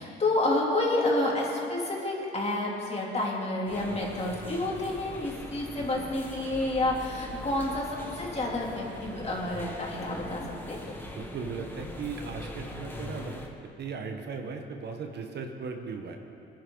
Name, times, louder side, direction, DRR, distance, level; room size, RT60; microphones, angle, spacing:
voice 1, 0.0-10.9, left 2 dB, 30° left, -3 dB, 3.0 m, -29 dB
sound 1, 3.7-13.5, left 1 dB, 10° left, 1.6 m, -42 dB
voice 2, 5.7-6.1 11.0-13.4 13.8-16.2, right 5 dB, 60° right, 4 dB, 1.3 m, -38 dB
21.0 x 10.5 x 3.9 m, 2.6 s
cardioid pair, 90°, 20 cm